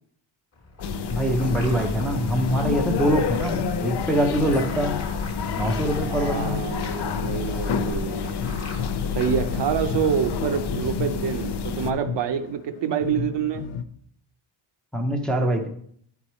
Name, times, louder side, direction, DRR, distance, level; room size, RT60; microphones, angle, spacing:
sound 1, 0.5-9.8, left 3 dB, 30° left, 1.2 m, -43 dB
sound 2, 0.8-11.9, left 6 dB, 55° left, 0.6 m, -28 dB
voice 1, 1.1-5.0 5.6-6.7 9.9-10.1 14.9-15.7, right 1 dB, ahead, 2 dB, 0.6 m, -24 dB
voice 2, 6.1-8.4 9.1-13.6, right 8 dB, 60° right, 8 dB, 0.8 m, -27 dB
sound 3, 7.1-13.8, left 7 dB, 90° left, 0.7 m, -35 dB
10.0 x 4.7 x 4.3 m, 0.64 s
wide cardioid pair, 180°, 49 cm